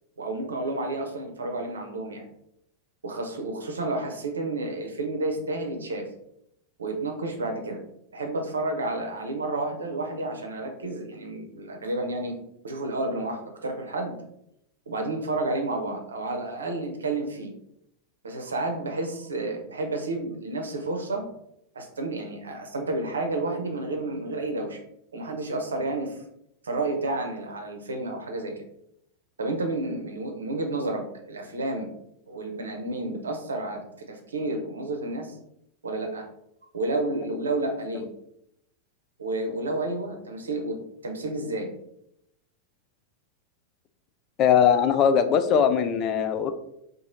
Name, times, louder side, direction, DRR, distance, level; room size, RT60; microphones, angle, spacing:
voice 1, 0.2-2.2 3.0-6.1 6.8-7.8 8.1-12.3 12.6-14.1 14.9-17.5 18.2-21.3 21.7-24.8 25.1-26.2 26.6-28.6 29.4-31.9 32.3-35.4 35.8-36.3 36.7-38.1 39.2-41.7, right 2 dB, 70° right, 3 dB, 0.6 m, -30 dB
voice 2, 44.4-46.5, left 7 dB, 35° left, 9 dB, 0.3 m, -20 dB
3.0 x 2.6 x 3.8 m, 0.78 s
figure-of-eight pair, 90°, 0 cm